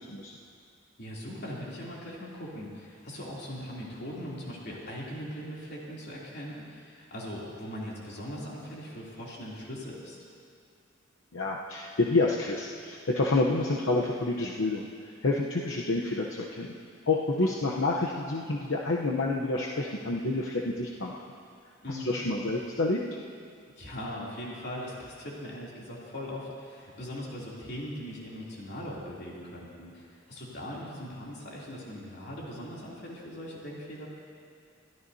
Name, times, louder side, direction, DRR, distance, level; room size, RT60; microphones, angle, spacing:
voice 1, 1.0-10.2 17.4-17.5 21.8-22.2 23.8-34.1, equal, 55° left, -5 dB, 3.0 m, -40 dB
voice 2, 11.3-14.9 15.2-16.7 17.1-21.2 21.9-23.0, left 2 dB, 80° left, -2 dB, 0.9 m, -28 dB
22.0 x 14.0 x 2.8 m, 2.4 s
head